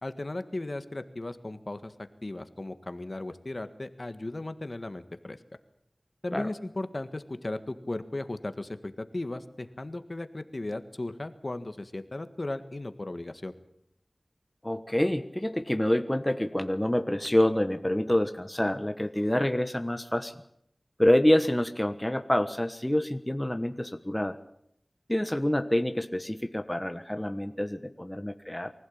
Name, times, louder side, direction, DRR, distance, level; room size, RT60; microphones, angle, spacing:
voice 1, 0.0-5.4 6.2-13.5, left 2 dB, 50° left, 10 dB, 1.7 m, -36 dB
voice 2, 14.6-20.3 21.0-24.4 25.1-28.7, left 1 dB, 15° left, 8 dB, 1.2 m, -27 dB
24.5 x 15.5 x 8.7 m, 0.73 s
wide cardioid pair, 50°, 0 cm